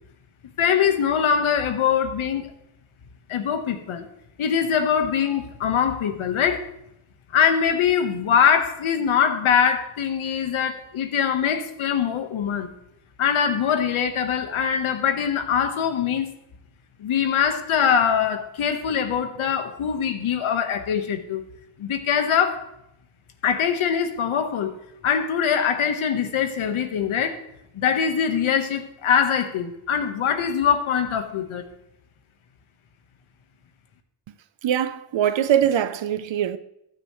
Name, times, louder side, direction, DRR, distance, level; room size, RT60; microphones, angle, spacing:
voice 1, 0.6-2.5 3.3-4.1 4.4-6.6 7.3-12.7 13.2-16.3 17.0-21.4 21.8-22.7 23.4-24.7 25.0-27.4 27.7-31.7, left 7 dB, 80° left, 1.5 m, -23 dB
voice 2, 34.6-36.6, right 10 dB, 65° right, 0.9 m, -22 dB
15.0 x 9.8 x 3.2 m
cardioid pair, 80°, 49 cm